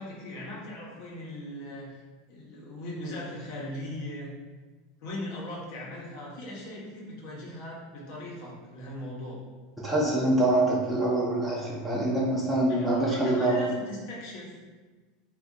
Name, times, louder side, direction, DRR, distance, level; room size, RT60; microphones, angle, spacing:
voice 1, 0.0-1.9 2.3-4.3 5.0-9.4 12.7-14.5, left 1 dB, 60° left, -4 dB, 0.8 m, -39 dB
voice 2, 9.8-13.6, right 1 dB, 5° right, -6 dB, 0.6 m, -25 dB
2.6 x 2.3 x 3.7 m, 1.3 s
supercardioid pair, 125°, 0 cm